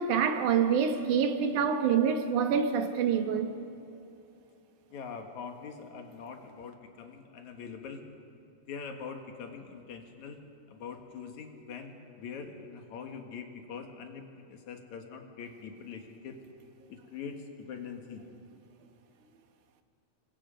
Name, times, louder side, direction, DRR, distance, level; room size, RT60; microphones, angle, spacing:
voice 1, 0.0-3.5, right 7 dB, 75° right, 2.6 m, -26 dB
voice 2, 4.9-8.0 8.7-10.4 10.7-16.4 16.9-18.2, left 6 dB, 65° left, 2.9 m, -43 dB
26.5 x 23.0 x 5.2 m
omnidirectional pair, 3.6 m